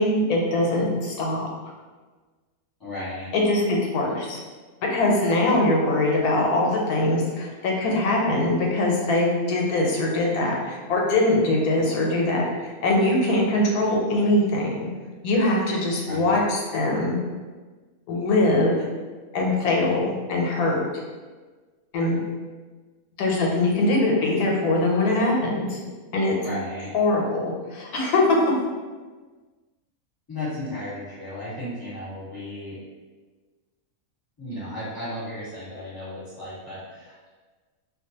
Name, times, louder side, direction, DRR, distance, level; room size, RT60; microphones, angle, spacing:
voice 1, 0.0-1.5 3.3-4.4 4.9-14.9 15.2-17.2 18.1-18.8 19.3-20.8 21.9-22.2 23.2-25.8 26.1-26.4 26.9-28.4, left 2 dB, 85° left, -1 dB, 1.1 m, -22 dB
voice 2, 2.8-3.3 16.1-16.4 26.4-26.9 30.3-32.8 34.4-37.3, left 1 dB, 15° left, -12 dB, 1.1 m, -34 dB
2.5 x 2.2 x 2.8 m, 1.4 s
omnidirectional pair, 1.6 m